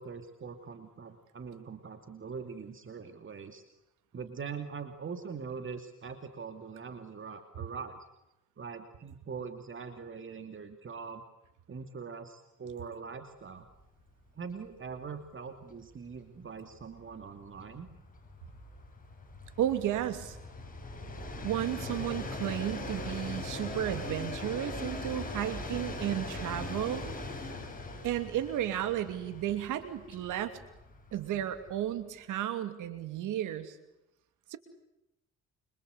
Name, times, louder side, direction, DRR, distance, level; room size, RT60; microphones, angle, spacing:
voice 1, 0.0-3.6 4.1-8.1 8.6-11.2 11.7-13.7 14.4-17.9, right 5 dB, 40° right, 7 dB, 2.7 m, -42 dB
Train, 13.7-13.9 14.2-14.3 14.6-32.0, left 2 dB, 30° left, 8.0 m, -41 dB
voice 2, 19.6-20.4 21.4-27.0 28.0-30.6 31.1-33.8 34.5-34.6, right 11 dB, 85° right, 10 dB, 2.8 m, -33 dB
27.5 x 26.0 x 8.3 m, 0.90 s
cardioid pair, 90°, 30 cm